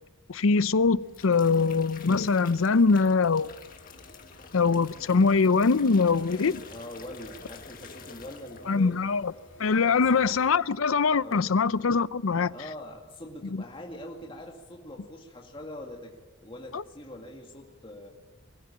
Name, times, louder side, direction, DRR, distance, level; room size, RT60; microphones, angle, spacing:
voice 1, 0.3-3.5 4.5-6.6 8.7-9.3 9.6-12.5 16.7-16.8, left 4 dB, 85° left, 0.6 m, -23 dB
sound 1, 0.9-8.9 9.2-9.5, left 5 dB, 40° left, 1.8 m, -49 dB
sound 2, 1.0-10.5, left 2 dB, 70° left, 3.2 m, -54 dB
voice 2, 6.7-9.0 9.6-10.2 11.2-11.4 12.5-16.2 16.4-18.1, left 1 dB, 25° left, 2.2 m, -43 dB
23.0 x 14.5 x 8.8 m
head